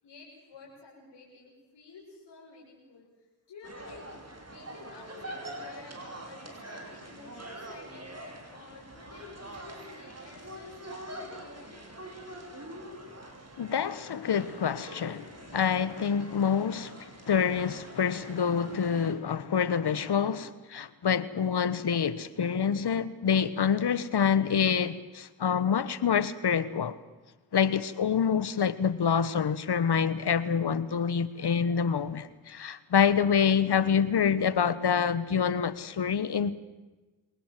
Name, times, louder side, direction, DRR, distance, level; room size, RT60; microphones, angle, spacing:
voice 1, 0.0-4.1 4.5-11.9, left 4 dB, 85° left, 6.5 m, -52 dB
sound 1, 3.6-19.1, right 1 dB, 35° right, 6.1 m, -45 dB
voice 2, 13.6-27.0 27.5-36.5, left 7 dB, 65° left, 1.4 m, -27 dB
26.0 x 19.0 x 7.6 m
cardioid pair, 45°, 42 cm